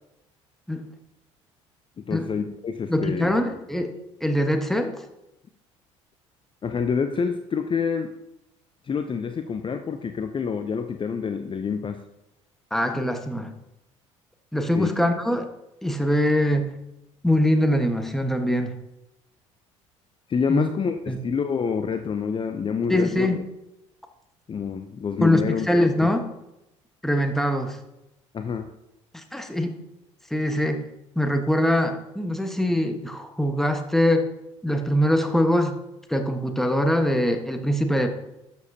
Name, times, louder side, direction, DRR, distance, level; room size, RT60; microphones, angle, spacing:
voice 1, 2.0-3.3 6.6-8.1 8.8-12.0 14.8-14.9 20.3-23.4 24.5-25.7 26.0-26.1 28.3-28.7, left 6 dB, 30° left, 8 dB, 0.7 m, -27 dB
voice 2, 2.9-3.9 4.2-5.0 12.7-13.5 14.5-15.5 15.8-16.7 17.2-18.7 20.5-20.7 21.1-21.2 22.9-23.4 25.2-26.2 27.0-27.8 29.1-29.8 30.3-30.9 31.1-34.3 34.6-35.7 36.1-38.1, left 1 dB, ahead, 5 dB, 1.3 m, -23 dB
12.5 x 7.3 x 2.8 m, 0.90 s
hypercardioid pair, 60°, 16 cm